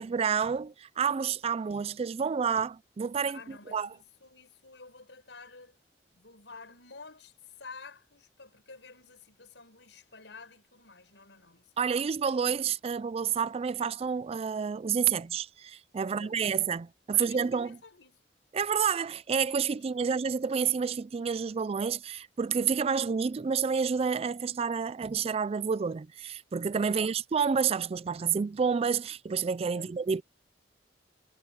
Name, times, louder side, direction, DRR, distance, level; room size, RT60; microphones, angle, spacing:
voice 1, 0.0-3.9 11.8-17.8 18.5-30.2, right 6 dB, 35° right, 0.3 m, -29 dB
voice 2, 3.2-5.8 6.1-11.9 12.4-13.0 16.0-16.8 17.1-18.2 19.9-20.2 26.8-27.2 29.7-30.0, left 4 dB, 80° left, 5.6 m, -51 dB
head